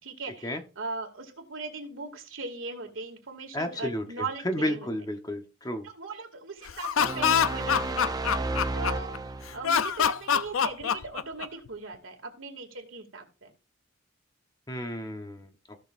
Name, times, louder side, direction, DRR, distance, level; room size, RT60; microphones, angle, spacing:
voice 1, 0.0-4.9 5.8-8.1 8.7-9.1 9.5-13.5, right 3 dB, 75° right, 3 dB, 2.5 m, -39 dB
voice 2, 3.5-4.0 4.4-5.9 14.7-15.5, equal, 20° left, 5 dB, 1.0 m, -31 dB
Laughter, 6.7-9.2 9.6-11.7, left 8 dB, 90° left, 0.5 m, -25 dB
sound 1, 7.0-9.8, right 2 dB, 20° right, 0.5 m, -32 dB
15.5 x 6.3 x 2.6 m, 0.33 s
head